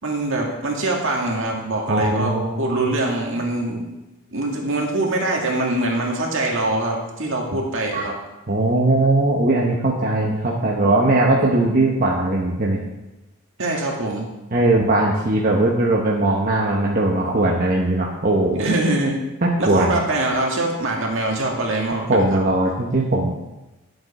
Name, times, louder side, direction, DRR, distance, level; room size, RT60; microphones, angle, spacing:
voice 1, 0.0-3.8 4.3-8.1 13.6-14.3 18.5-19.3 19.6-22.4, right 2 dB, 60° right, 0 dB, 2.1 m, -23 dB
voice 2, 1.9-2.9 7.9-8.0 8.5-12.8 14.5-18.7 19.4-20.0 22.1-23.4, right 2 dB, 40° right, -3 dB, 1.1 m, -19 dB
12.0 x 7.9 x 4.3 m, 1.0 s
head